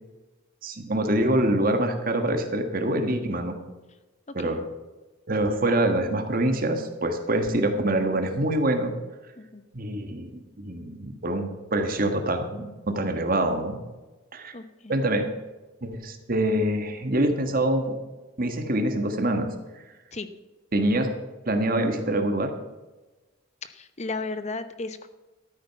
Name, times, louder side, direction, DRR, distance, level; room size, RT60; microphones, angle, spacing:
voice 1, 0.6-3.6 4.3-4.6 5.3-8.9 9.7-13.8 14.3-14.5 14.9-15.3 15.8-17.9 18.4-19.5 20.7-21.1 21.4-22.5, right 1 dB, 45° right, 6 dB, 1.5 m, -25 dB
voice 2, 14.5-14.9 20.1-20.3 23.6-25.1, left 3 dB, 35° left, 11 dB, 0.9 m, -35 dB
13.0 x 8.9 x 5.7 m, 1.2 s
head